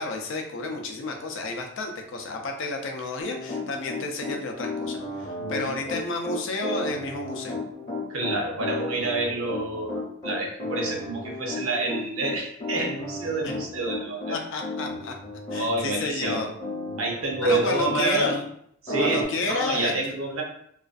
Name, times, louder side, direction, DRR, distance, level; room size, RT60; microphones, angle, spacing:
voice 1, 0.0-7.6 13.4-13.5 14.3-15.1 15.5-16.5 17.4-18.3 19.0-19.9, left 2 dB, 65° left, 3 dB, 0.4 m, -31 dB
Piano, 3.2-18.4 18.9-19.2, left 2 dB, 30° left, 0.7 m, -33 dB
voice 2, 5.4-6.0 8.1-14.4 15.5-16.4 17.0-18.4 18.8-20.4, right 2 dB, 70° right, -1 dB, 0.6 m, -28 dB
2.4 x 2.2 x 2.4 m, 0.68 s
head